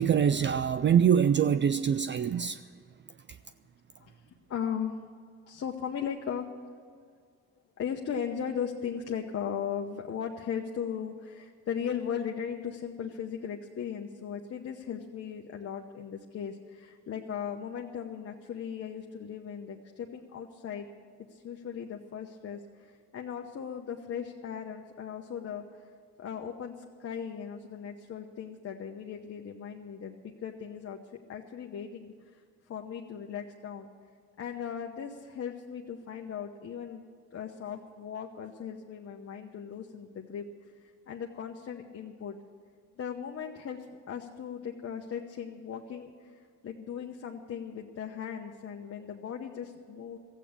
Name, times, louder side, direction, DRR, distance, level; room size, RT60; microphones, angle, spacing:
voice 1, 0.0-2.6, right 8 dB, 40° right, 0.4 m, -24 dB
voice 2, 4.5-5.0 5.5-6.5 7.8-20.9 21.3-25.9 26.2-31.0 31.3-32.4 32.7-33.9 34.4-37.0 37.3-40.5 41.1-42.4 43.0-43.8 44.1-50.2, left 8 dB, 50° left, 1.0 m, -37 dB
14.5 x 8.4 x 8.8 m
cardioid pair, 90°, 30 cm